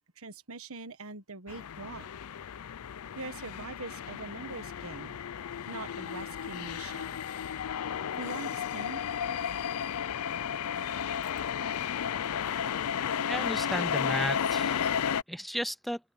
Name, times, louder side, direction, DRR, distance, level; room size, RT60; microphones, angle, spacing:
voice 1, 0.2-2.1 3.1-5.2 5.7-7.2 8.2-9.0, right 3 dB, 70° right, 1.5 m, -42 dB
sound 1, 1.5-15.2, left 8 dB, 70° left, 0.5 m, -33 dB
voice 2, 13.3-14.9 15.3-16.0, equal, ahead, 0.4 m, -34 dB
open air
head